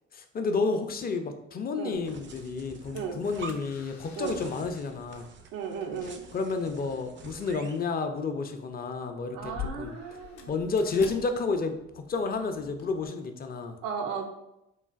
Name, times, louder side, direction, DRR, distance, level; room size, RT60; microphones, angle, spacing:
voice 1, 0.1-5.3 6.3-10.0 10.5-13.8, left 4 dB, 30° left, 6 dB, 0.4 m, -31 dB
sound 1, 1.9-13.1, left 7 dB, 85° left, 0.5 m, -48 dB
sound 2, 2.0-7.9, right 5 dB, 35° right, 0.4 m, -47 dB
voice 2, 5.5-6.2 9.3-10.5 13.8-14.3, right 6 dB, 85° right, 4 dB, 0.5 m, -35 dB
3.2 x 2.4 x 2.3 m, 0.85 s
hypercardioid pair, 55°, 33 cm